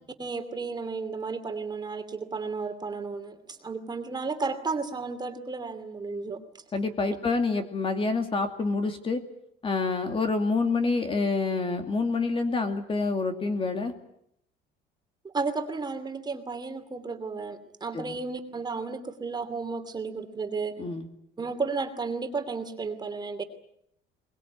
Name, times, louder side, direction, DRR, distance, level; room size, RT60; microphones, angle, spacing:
voice 1, 0.2-6.4 15.2-20.7 21.4-23.4, right 4 dB, 20° right, 7 dB, 2.7 m, -33 dB
voice 2, 6.7-9.2 9.6-13.9 17.9-18.2 20.8-21.1, left 3 dB, 30° left, 7 dB, 2.5 m, -27 dB
23.0 x 20.5 x 9.4 m, 0.72 s
cardioid pair, 135°, 19 cm